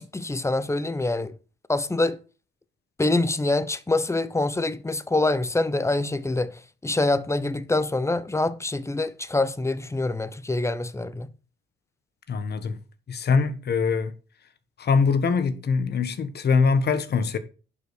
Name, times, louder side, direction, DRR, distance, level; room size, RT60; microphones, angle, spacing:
voice 1, 0.0-1.3 1.7-2.2 3.0-11.3, left 2 dB, 15° left, 1.0 m, -25 dB
voice 2, 12.3-12.8 13.1-14.1 14.8-17.4, left 5 dB, 55° left, 1.5 m, -23 dB
11.0 x 5.5 x 6.5 m
cardioid pair, 90°, 20 cm